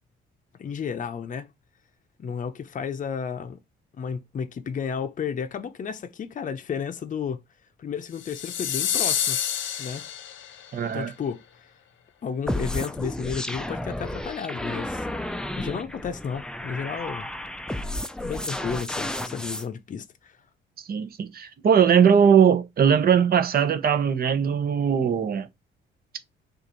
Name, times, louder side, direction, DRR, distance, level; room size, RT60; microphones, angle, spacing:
voice 1, 0.6-1.5 2.2-3.6 4.0-7.4 7.8-9.4 9.8-10.0 10.9-11.4 12.2-15.1 15.6-17.3 18.2-20.4, left 6 dB, 40° left, 0.7 m, -32 dB
sound 1, 8.2-10.7, left 9 dB, 75° left, 0.7 m, -28 dB
voice 2, 10.7-11.1 20.9-25.5, right 7 dB, 50° right, 0.9 m, -20 dB
sound 2, 12.5-19.7, left 1 dB, 5° left, 0.5 m, -32 dB
6.6 x 2.6 x 3.0 m
cardioid pair, 90°, 20 cm